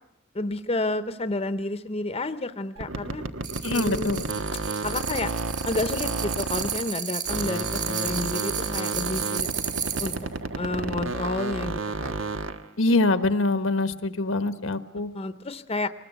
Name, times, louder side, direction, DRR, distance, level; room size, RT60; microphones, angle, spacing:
voice 1, 0.3-3.2 3.7-4.1 4.8-5.3 5.6-9.5 10.0-10.2 10.6-12.1 15.1-15.9, left 2 dB, 30° left, 11 dB, 0.8 m, -30 dB
sound 1, 2.8-7.0 7.3-12.7, right 3 dB, 90° right, 1.3 m, -31 dB
sound 2, 3.4-10.2, right 8 dB, 40° right, 2.1 m, -33 dB
voice 2, 3.6-4.2 12.8-15.1, left 2 dB, 85° left, 10 dB, 1.4 m, -24 dB
24.5 x 20.0 x 8.2 m, 0.78 s
head